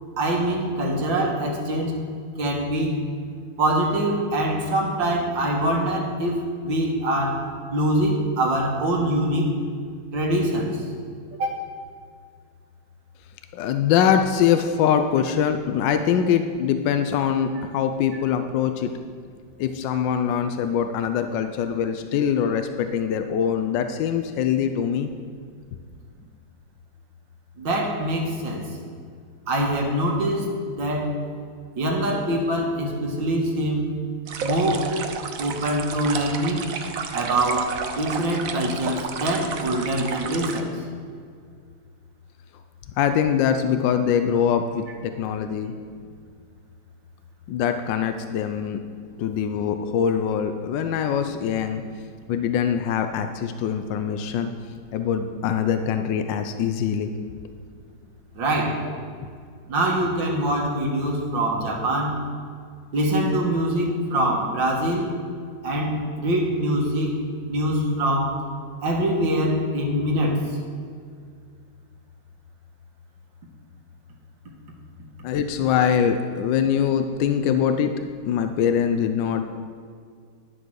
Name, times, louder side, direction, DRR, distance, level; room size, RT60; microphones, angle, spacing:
voice 1, 0.2-1.9 2.4-3.0 3.6-7.4 7.7-9.5 10.1-10.8 11.4-11.6 27.6-28.7 29.5-31.2 31.8-33.9 34.4-34.9 35.4-36.7 37.1-40.7 58.4-58.8 59.7-62.2 62.9-65.1 65.6-67.2 67.5-68.4 68.8-70.5, right 1 dB, 80° right, 0 dB, 2.3 m, -24 dB
voice 2, 13.5-18.9 19.6-25.1 43.0-45.7 47.5-48.8 49.2-51.8 52.3-54.5 54.9-57.1 58.8-58.9 75.2-78.0 78.3-79.4, left 8 dB, 80° left, 8 dB, 1.3 m, -23 dB
sound 1, 34.3-40.6, right 6 dB, 60° right, 1.0 m, -32 dB
11.0 x 7.5 x 6.3 m, 2.1 s
omnidirectional pair, 2.0 m